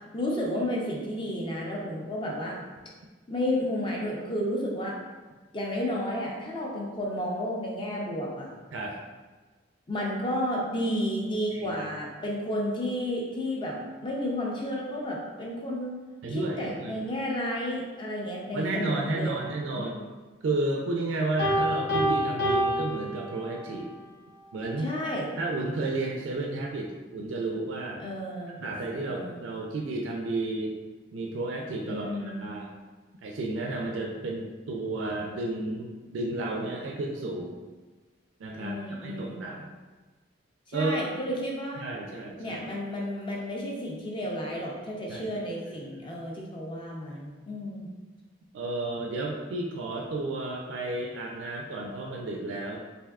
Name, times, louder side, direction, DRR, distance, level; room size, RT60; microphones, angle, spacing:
voice 1, 0.1-2.6 3.3-5.0 5.5-8.5 9.9-13.7 14.0-16.0 16.3-19.3 19.7-19.9 24.8-25.3 28.0-28.6 29.0-29.4 31.9-32.5 38.5-39.5 40.7-41.9 42.4-47.9, left 1 dB, 25° left, -2 dB, 0.5 m, -32 dB
voice 2, 11.5-11.9 16.2-17.0 18.5-20.0 20.4-23.9 24.5-24.9 25.4-28.0 28.6-30.8 31.1-32.7 33.2-37.6 38.4-39.7 40.7-41.0 41.8-42.6 45.1-45.3 48.5-52.8, right 2 dB, 85° right, -1 dB, 0.4 m, -32 dB
Piano, 21.4-23.8, equal, 70° left, 0.8 m, -27 dB
3.3 x 2.6 x 2.3 m, 1.3 s
head